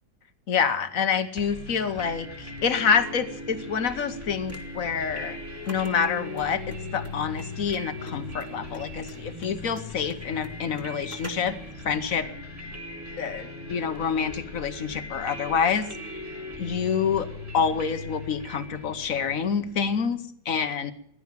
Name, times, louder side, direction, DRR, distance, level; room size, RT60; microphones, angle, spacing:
voice 1, 0.5-5.4 5.7-11.6 11.8-12.3 13.2-16.2 16.6-17.3 17.5-20.9, left 6 dB, 55° left, 11 dB, 1.3 m, -27 dB
sound 1, 1.4-20.0, left 2 dB, 10° right, 3.8 m, -39 dB
sound 2, 4.5-11.7, equal, 10° left, 2.2 m, -46 dB
16.5 x 12.0 x 7.4 m, 0.76 s
omnidirectional pair, 1.9 m